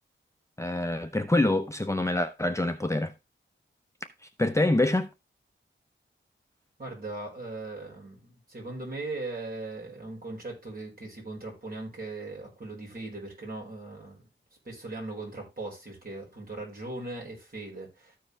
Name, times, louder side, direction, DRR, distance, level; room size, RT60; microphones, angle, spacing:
voice 1, 0.6-3.1 4.4-5.1, left 2 dB, 15° left, 0.8 m, -25 dB
voice 2, 6.8-14.2 14.6-18.2, right 2 dB, 45° right, 5.3 m, -39 dB
14.0 x 4.8 x 3.3 m
wide cardioid pair, 70°, 20 cm